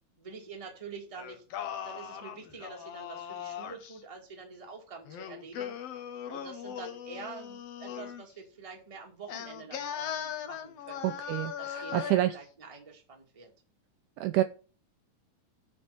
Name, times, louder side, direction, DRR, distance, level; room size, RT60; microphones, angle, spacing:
voice 1, 0.2-1.4 1.8-5.7 6.3-11.2 11.6-13.5, right 4 dB, 15° right, 1 dB, 1.3 m, -46 dB
Singing, 1.2-4.0 5.1-8.3 9.3-12.4, left 9 dB, 75° left, 1.4 m, -39 dB
voice 2, 11.0-12.4 14.2-14.4, right 15 dB, 90° right, 11 dB, 1.7 m, -28 dB
7.7 x 5.4 x 6.8 m, 0.37 s
omnidirectional pair, 4.1 m